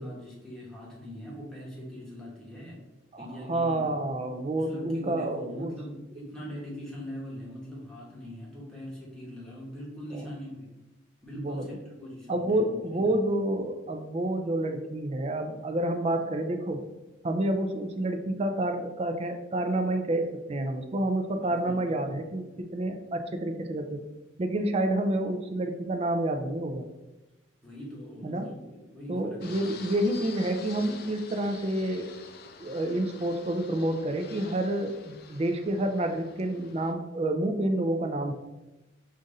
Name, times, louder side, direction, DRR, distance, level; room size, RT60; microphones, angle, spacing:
voice 1, 0.0-2.8 3.2-4.0 4.5-10.7 11.2-13.2 21.3-22.3 27.6-29.8, equal, 5° left, -5 dB, 1.2 m, -42 dB
voice 2, 3.1-5.7 10.1-10.2 11.3-11.7 12.3-16.8 17.2-24.0 24.4-26.9 28.2-28.5 29.1-32.1 32.6-38.3, right 1 dB, 30° right, 6 dB, 0.4 m, -29 dB
Fixed-wing aircraft airplane, 29.4-36.9, left 5 dB, 55° left, 0.4 m, -47 dB
5.3 x 2.5 x 3.8 m, 1.1 s
head